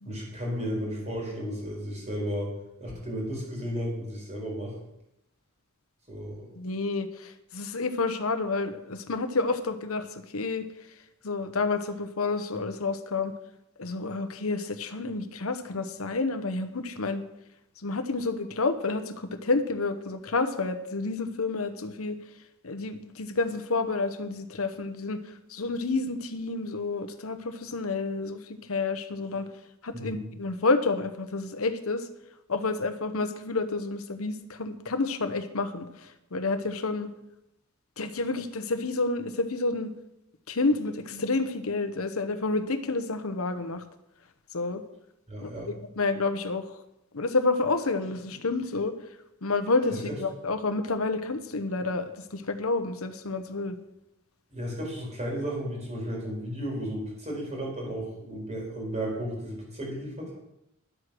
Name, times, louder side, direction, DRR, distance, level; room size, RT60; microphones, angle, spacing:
voice 1, 0.0-2.5 2.8-4.7 6.1-6.5 29.9-30.2 45.3-45.7 54.5-60.4, equal, 30° right, -2 dB, 4.4 m, -34 dB
voice 2, 6.5-10.7 11.2-13.3 13.8-17.2 17.8-22.2 22.6-29.5 29.8-32.1 32.5-37.1 38.0-39.9 40.5-43.8 44.5-44.8 45.4-46.8 47.1-48.9 49.4-53.8, left 3 dB, 85° left, 9 dB, 1.0 m, -29 dB
11.5 x 8.0 x 6.1 m, 0.86 s
head